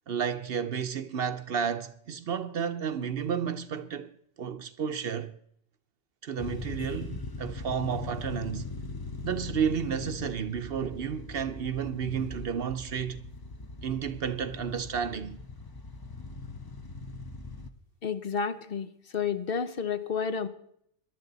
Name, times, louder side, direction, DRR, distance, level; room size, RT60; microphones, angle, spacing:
voice 1, 0.1-4.1 4.4-5.3 6.2-8.7 9.2-13.2 13.8-15.4, right 7 dB, 60° right, 0.9 m, -32 dB
sound 1, 6.4-17.7, left 3 dB, 25° left, 0.6 m, -40 dB
voice 2, 18.0-20.5, left 6 dB, 55° left, 0.9 m, -31 dB
18.5 x 11.5 x 4.0 m
omnidirectional pair, 1.2 m